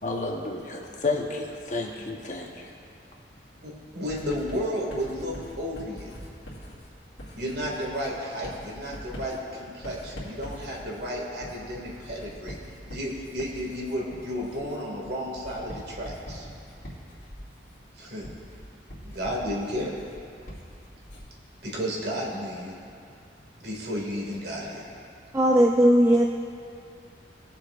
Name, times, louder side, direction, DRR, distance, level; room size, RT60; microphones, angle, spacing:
voice 1, 0.0-2.7, left 3 dB, 40° left, 0 dB, 1.0 m, -31 dB
voice 2, 3.6-6.1 7.3-12.6 12.9-16.5 18.0-18.3 19.0-20.0 21.6-22.8 23.6-24.9, equal, 60° right, -3 dB, 2.0 m, -33 dB
Writing, 4.1-21.4, equal, 75° left, 2.3 m, -43 dB
voice 3, 25.3-26.3, equal, 15° right, 1 dB, 0.3 m, -18 dB
20.0 x 7.3 x 2.4 m, 2.4 s
head